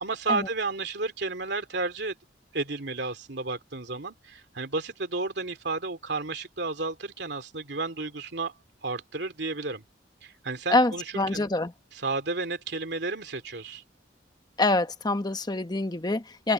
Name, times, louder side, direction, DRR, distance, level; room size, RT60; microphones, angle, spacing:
voice 1, 0.0-2.1 2.5-8.5 8.8-9.8 10.2-11.5 12.0-13.8, right 3 dB, 65° right, 3.0 m, -32 dB
voice 2, 10.7-11.7 14.6-16.5, left 2 dB, 25° left, 1.0 m, -25 dB
head